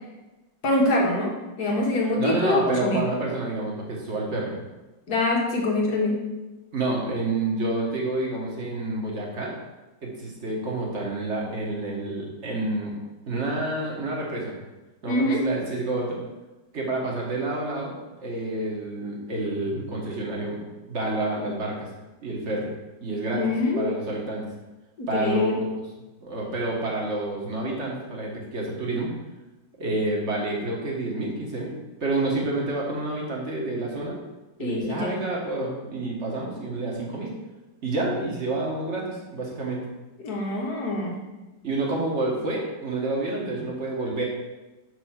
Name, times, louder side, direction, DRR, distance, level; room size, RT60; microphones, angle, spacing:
voice 1, 0.6-1.3 1.6-3.1 5.1-6.2 15.1-15.4 23.3-24.1 25.0-25.5 34.6-35.2 40.2-41.2, left 2 dB, 60° left, -1 dB, 1.8 m, -24 dB
voice 2, 2.2-4.5 6.7-9.5 10.0-12.9 13.3-14.5 15.0-16.2 16.7-17.9 18.2-20.6 20.9-21.9 22.2-22.7 23.0-23.4 23.8-24.4 25.1-25.7 26.2-29.1 29.8-31.7 32.0-34.2 34.6-37.3 37.8-39.8 41.6-44.2, right 2 dB, 40° right, -2 dB, 1.7 m, -28 dB
5.9 x 4.8 x 5.8 m, 1.1 s
omnidirectional pair, 1.9 m